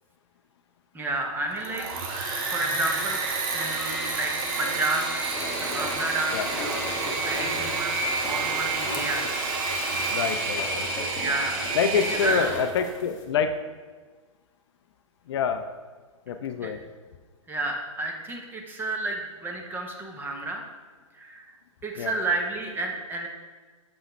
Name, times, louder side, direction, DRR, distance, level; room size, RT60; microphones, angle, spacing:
voice 1, 0.9-1.9 2.4-3.2 3.5-5.2 5.6-8.0 8.2-9.3 11.2-11.6 12.1-12.6 16.6-16.7 17.5-20.6 21.1-21.6 21.8-23.3, right 2 dB, 10° right, 2 dB, 0.8 m, -31 dB
Engine / Mechanisms, 1.5-12.7, right 3 dB, 40° right, 1.1 m, -29 dB
sound 1, 5.3-13.2, left 2 dB, 20° left, 1.2 m, -39 dB
voice 2, 10.1-11.1 11.7-13.6 15.3-15.7 16.3-16.8 22.0-22.1, left 6 dB, 50° left, 8 dB, 0.4 m, -27 dB
6.9 x 5.5 x 3.3 m, 1.4 s
figure-of-eight pair, 115°, 17 cm